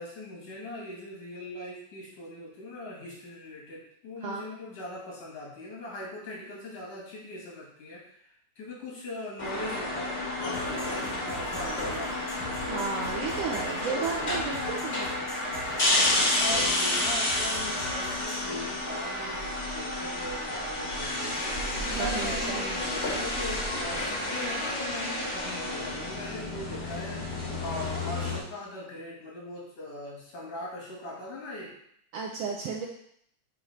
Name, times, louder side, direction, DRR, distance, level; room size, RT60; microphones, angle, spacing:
voice 1, 0.0-12.2 16.4-21.5 22.0-27.3 27.6-31.7, left 1 dB, 80° left, -5 dB, 3.6 m, -40 dB
sound 1, 9.4-28.4, left 1 dB, 40° left, 1.0 m, -30 dB
sound 2, 10.5-18.5, left 2 dB, 65° left, 0.7 m, -43 dB
voice 2, 12.7-15.2 16.3-16.6 21.8-22.7 32.1-32.9, right 5 dB, 80° right, -1 dB, 1.4 m, -34 dB
7.2 x 3.1 x 5.0 m, 0.69 s
omnidirectional pair, 3.5 m